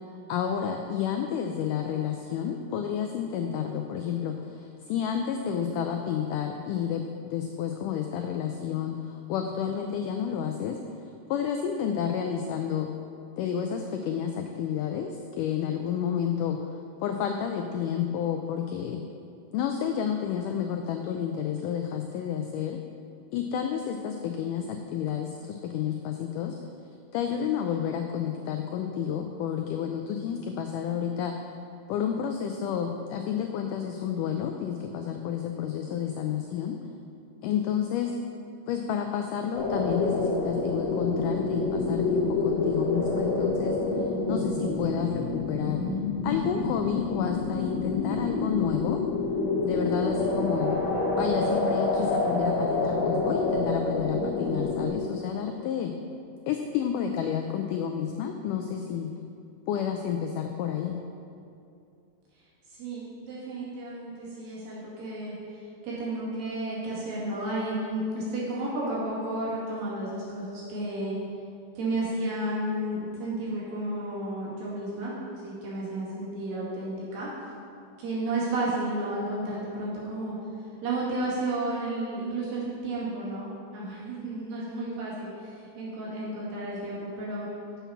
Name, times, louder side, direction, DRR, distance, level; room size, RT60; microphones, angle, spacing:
voice 1, 0.3-10.8 11.3-12.9 13.4-16.6 17.0-19.0 19.5-22.8 23.3-26.6 27.1-31.4 31.9-36.8 37.4-38.1 38.7-45.8 46.2-49.0 49.6-50.8 51.2-55.9 56.5-59.1 59.7-61.0, left 8 dB, 90° left, 4 dB, 1.8 m, -30 dB
sound 1, 39.6-54.9, left 3 dB, 65° left, 1.9 m, -28 dB
voice 2, 62.7-65.4 65.8-71.2 71.8-75.1 75.4-77.3 78.0-80.4 80.8-87.5, right 2 dB, 70° right, -7 dB, 3.9 m, -32 dB
7.2 x 7.0 x 5.7 m, 2.5 s
omnidirectional pair, 4.2 m